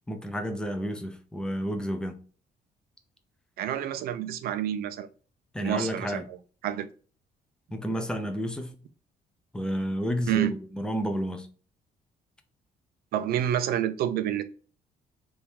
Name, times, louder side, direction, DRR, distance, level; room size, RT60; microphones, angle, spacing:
voice 1, 0.1-2.2 5.5-6.3 7.7-8.7 9.5-11.5, equal, 5° left, 0.5 m, -31 dB
voice 2, 3.6-5.1 5.6-6.4 6.6-6.9 10.3-10.5 13.1-14.4, right 11 dB, 75° right, 0.5 m, -28 dB
3.6 x 2.7 x 4.5 m
cardioid pair, 145°, 16 cm